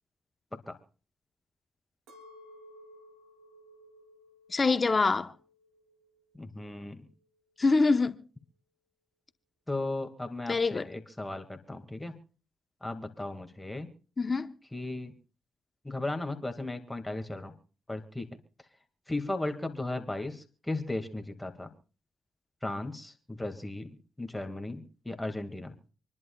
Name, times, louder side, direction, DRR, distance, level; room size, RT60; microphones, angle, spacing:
Chink clink, 2.1-6.4 6.8-7.4, equal, 85° right, 2.5 m, -56 dB
voice 1, 4.5-5.3 7.6-8.1 10.5-10.9 14.2-14.5, left 3 dB, 40° left, 0.9 m, -25 dB
voice 2, 6.3-7.0 9.7-12.1 12.8-13.9 14.7-15.1 15.8-17.5 17.9-18.3 19.1-21.7 22.6-25.8, left 2 dB, 15° left, 2.0 m, -36 dB
27.0 x 11.0 x 2.3 m
hypercardioid pair, 45°, 0 cm